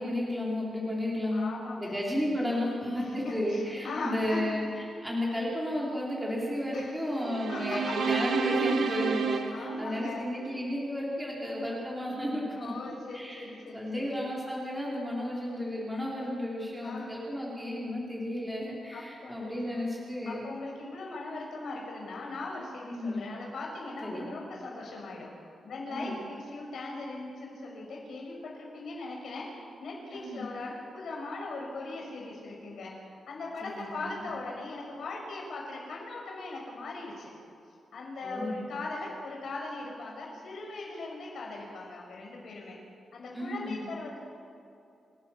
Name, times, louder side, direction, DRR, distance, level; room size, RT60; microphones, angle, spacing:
voice 1, 0.0-1.5 1.8-12.7 13.1-13.5 13.7-20.5 22.9-23.2 24.0-24.3 25.9-26.2 30.1-30.4 33.6-34.2 38.2-38.6 43.3-43.8, left 1 dB, 5° right, -5 dB, 3.7 m, -33 dB
voice 2, 1.3-2.0 3.0-4.5 6.7-7.0 7.5-8.0 9.5-10.3 12.5-14.1 16.8-17.1 18.9-19.9 20.2-37.3 37.9-42.8 43.1-44.2, left 3 dB, 65° left, -2 dB, 6.6 m, -40 dB
sound 1, 7.2-10.6, right 5 dB, 65° right, 1.7 m, -31 dB
28.5 x 16.5 x 7.1 m, 2.7 s
wide cardioid pair, 175°, 0 cm